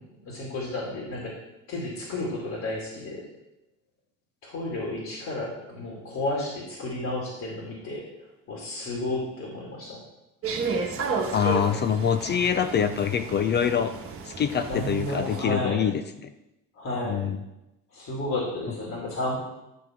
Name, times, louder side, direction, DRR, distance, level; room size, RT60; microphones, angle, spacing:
voice 1, 0.2-1.3 1.7-3.2 4.4-8.0 8.5-10.0 14.7-15.8 16.8-17.3 17.9-19.3, left 1 dB, 50° left, -3 dB, 2.7 m, -32 dB
sound 1, 10.4-15.5, right 4 dB, 40° right, 1.3 m, -32 dB
voice 2, 11.3-13.9 14.3-16.3 17.1-17.4, left 8 dB, 30° left, 10 dB, 0.4 m, -25 dB
11.0 x 6.0 x 4.6 m, 0.93 s
cardioid pair, 135°, 35 cm